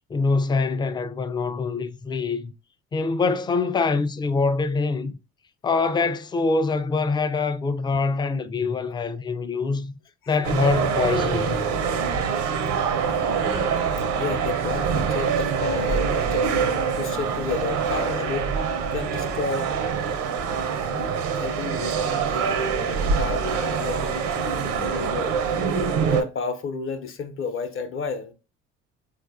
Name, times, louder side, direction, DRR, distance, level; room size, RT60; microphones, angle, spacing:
voice 1, 0.1-2.5 2.9-5.2 5.6-9.9 10.3-11.6, left 4 dB, 15° left, 0.3 m, -24 dB
sound 1, 10.4-26.2, right 6 dB, 80° right, 0.6 m, -25 dB
voice 2, 14.2-16.6 16.9-18.5 18.9-19.7 20.8-25.4 26.1-28.3, left 5 dB, 45° left, 0.7 m, -32 dB
4.0 x 2.4 x 2.3 m
supercardioid pair, 70°, 29 cm